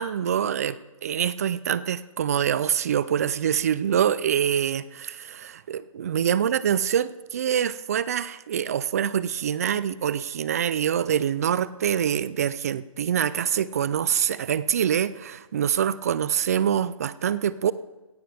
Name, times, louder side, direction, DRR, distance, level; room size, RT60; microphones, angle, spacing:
voice 1, 0.0-17.7, right 9 dB, 30° right, 17 dB, 0.4 m, -25 dB
17.5 x 14.5 x 3.5 m, 1.1 s
hypercardioid pair, 160°, 17 cm